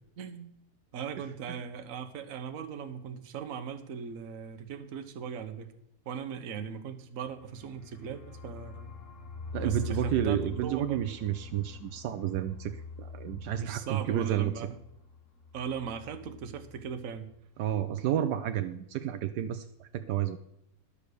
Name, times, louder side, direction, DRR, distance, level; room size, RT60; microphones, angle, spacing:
voice 1, 0.2-0.5 0.9-5.7 6.1-8.9 9.6-11.2 13.6-14.8 15.5-17.3, right 7 dB, 55° right, 8 dB, 1.3 m, -39 dB
sound 1, 7.3-16.9 17.2-17.3 17.5-18.0, left 4 dB, 50° left, 2.2 m, -44 dB
voice 2, 9.5-14.5 17.6-20.4, right 11 dB, 80° right, 9 dB, 1.2 m, -31 dB
11.5 x 6.9 x 6.6 m, 0.76 s
omnidirectional pair, 1.8 m